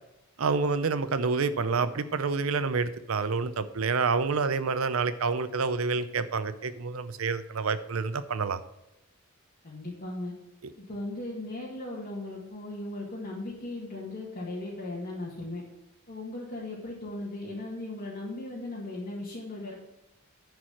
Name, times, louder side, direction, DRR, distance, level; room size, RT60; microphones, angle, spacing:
voice 1, 0.4-8.6, right 4 dB, 85° right, 12 dB, 0.6 m, -28 dB
voice 2, 9.6-10.3 10.8-15.6 16.1-19.7, left 2 dB, 45° left, -6 dB, 1.9 m, -37 dB
10.5 x 4.8 x 5.8 m, 0.91 s
head